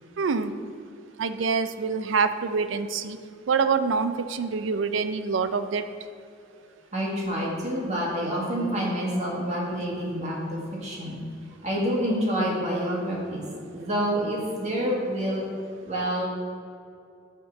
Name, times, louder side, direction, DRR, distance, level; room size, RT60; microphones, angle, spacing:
voice 1, 0.2-0.5 1.2-3.2 3.5-5.9, right 5 dB, 70° right, 11 dB, 0.4 m, -25 dB
voice 2, 6.9-11.2 11.6-13.4 13.7-15.5 15.8-16.3, equal, 35° right, -4 dB, 1.8 m, -27 dB
9.7 x 3.7 x 6.4 m, 2.4 s
head